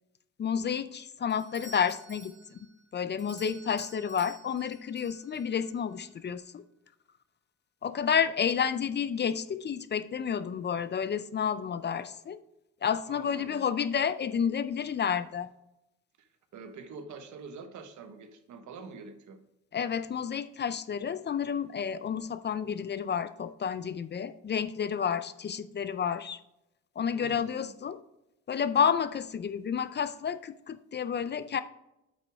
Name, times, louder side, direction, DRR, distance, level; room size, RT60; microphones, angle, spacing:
voice 1, 0.4-2.3 2.9-6.6 7.8-12.4 12.8-15.5 19.7-26.4 27.0-28.0 28.5-31.6, left 7 dB, 35° left, 13 dB, 0.5 m, -30 dB
Doorbell, 1.3-5.8, right 2 dB, 35° right, 2.8 m, -52 dB
voice 2, 13.0-13.6 16.2-19.4 27.1-27.7, right 4 dB, 70° right, 7 dB, 1.2 m, -46 dB
8.5 x 5.9 x 3.5 m, 0.88 s
cardioid pair, 90°, 30 cm